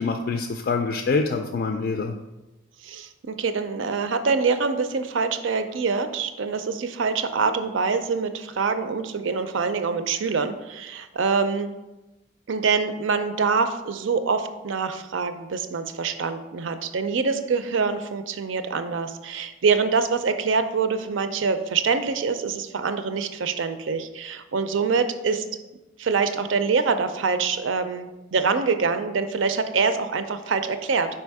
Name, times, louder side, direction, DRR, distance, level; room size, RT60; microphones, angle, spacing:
voice 1, 0.0-2.1, left 4 dB, 50° left, 5 dB, 0.3 m, -25 dB
voice 2, 2.8-11.7 12.5-25.4 26.0-31.1, right 5 dB, 80° right, 9 dB, 0.5 m, -25 dB
4.8 x 4.4 x 4.7 m, 1.0 s
head